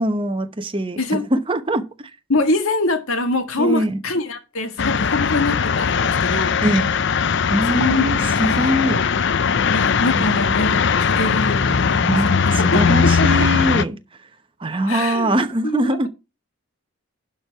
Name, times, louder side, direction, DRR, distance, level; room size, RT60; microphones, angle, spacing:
voice 1, 0.0-2.1 3.6-4.0 6.6-6.9 7.5-9.0 10.1-10.3 12.1-14.0 14.6-16.1, right 1 dB, 25° right, 0.9 m, -22 dB
voice 2, 2.3-6.6 7.7-9.1 9.7-13.5 14.9-15.3 15.6-16.1, left 2 dB, 75° left, 1.8 m, -24 dB
sound 1, 4.8-13.8, left 6 dB, 55° left, 0.5 m, -19 dB
11.5 x 4.6 x 5.7 m
head